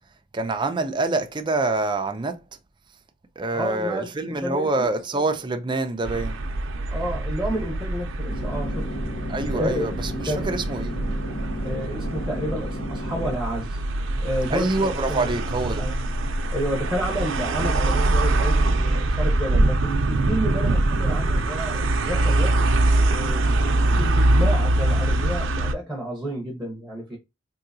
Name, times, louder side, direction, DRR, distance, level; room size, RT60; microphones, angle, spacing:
voice 1, 0.3-2.4 3.4-6.4 9.3-11.0 14.5-15.9, right 2 dB, 25° right, 0.5 m, -26 dB
voice 2, 3.5-4.9 6.9-8.9 9.5-9.9 10.3-10.5 11.6-13.8 14.2-14.7 15.1-15.3 15.8-16.0 16.5-22.5 23.0-27.2, equal, ahead, 1.0 m, -30 dB
sound 1, 6.0-25.7, right 2 dB, 75° right, 0.6 m, -23 dB
sound 2, 8.3-13.4, left 1 dB, 45° left, 0.9 m, -33 dB
3.8 x 2.7 x 2.6 m
head